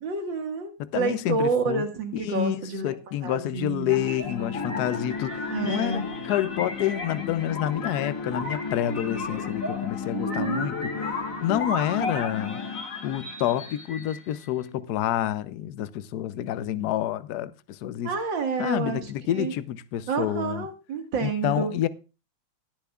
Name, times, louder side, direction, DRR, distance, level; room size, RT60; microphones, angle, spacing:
voice 1, 0.0-3.0 3.2-3.9 5.5-6.1 10.1-10.7 18.0-19.0 19.4-19.5 20.1-21.7, right 4 dB, 65° right, 2.5 m, -29 dB
voice 2, 0.8-1.8 2.1-12.6 13.0-18.1 18.6-20.7 21.2-21.9, left 12 dB, 65° left, 1.0 m, -28 dB
sound 1, 3.9-14.5, left 4 dB, 40° left, 2.2 m, -32 dB
18.0 x 10.5 x 2.4 m
omnidirectional pair, 2.2 m